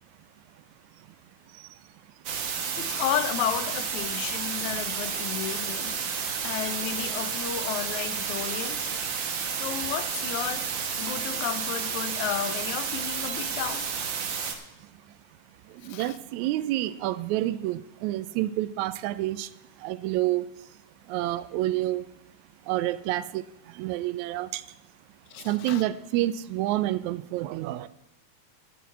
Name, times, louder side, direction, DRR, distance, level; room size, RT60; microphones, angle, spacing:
sound 1, 2.3-14.6, right 6 dB, 55° right, 1.5 m, -31 dB
voice 1, 2.8-8.9 9.5-13.9 15.9-16.2 20.1-20.2 25.3-25.8, left 10 dB, 85° left, 12 dB, 2.1 m, -33 dB
voice 2, 15.8-19.5 19.8-20.4 21.1-22.1 22.7-23.4 23.8-24.6 25.5-27.9, right 15 dB, 85° right, 15 dB, 1.9 m, -28 dB
11.5 x 5.9 x 8.2 m, 0.90 s
omnidirectional pair, 3.3 m